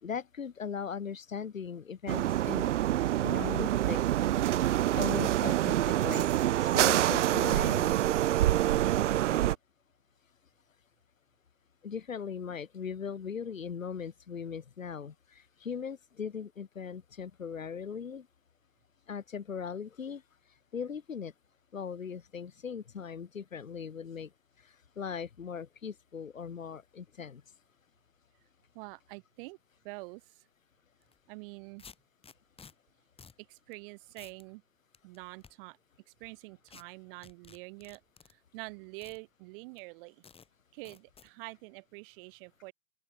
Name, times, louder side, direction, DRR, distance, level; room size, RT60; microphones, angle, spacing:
voice 1, 0.0-2.7 3.2-4.0 4.9-6.3 6.6-7.9 11.8-18.3 19.1-20.2 20.7-21.3 21.7-24.3 25.0-27.4, left 6 dB, 80° left, 3.0 m, -39 dB
sound 1, 2.1-9.5, right 13 dB, 65° right, 0.7 m, -26 dB
voice 2, 28.7-29.6 29.8-30.5 31.3-31.9 33.4-34.6 35.0-35.8 36.1-38.0 38.3-40.2 40.7-42.7, right 27 dB, 45° right, 2.9 m, -46 dB
sound 2, 31.1-31.2 31.8-32.7 33.2-33.4 33.7-33.8 34.2-34.4 34.9-35.5 36.7-36.8 37.2-38.3 39.0-39.2 39.8-39.9 40.2-40.5 40.9-41.3, left 6 dB, 15° left, 6.0 m, -53 dB
open air
hypercardioid pair, 110°, 39 cm